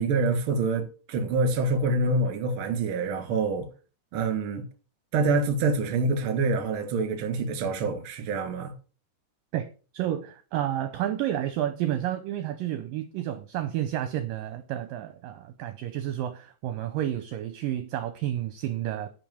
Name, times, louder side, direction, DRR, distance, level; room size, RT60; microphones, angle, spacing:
voice 1, 0.0-3.7 4.1-4.6 5.1-8.7, right 3 dB, 45° right, 2.1 m, -26 dB
voice 2, 9.9-19.1, right 12 dB, 75° right, 2.2 m, -30 dB
10.5 x 5.4 x 7.0 m
omnidirectional pair, 4.6 m